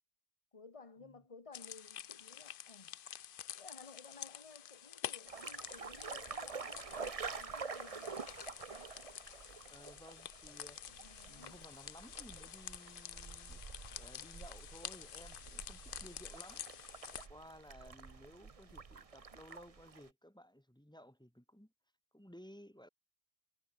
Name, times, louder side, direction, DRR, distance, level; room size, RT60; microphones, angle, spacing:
voice 1, 0.5-3.0 3.5-8.4 10.9-11.6, left 4 dB, 30° left, 1.5 m, -57 dB
sound 1, 1.5-17.3, left 10 dB, 60° left, 0.8 m, -49 dB
sound 2, 5.3-20.1, right 5 dB, 35° right, 1.0 m, -48 dB
voice 2, 9.7-10.8 11.2-13.6 14.0-16.7 17.1-21.7 22.1-22.9, equal, 5° left, 3.8 m, -57 dB
omnidirectional pair, 1.1 m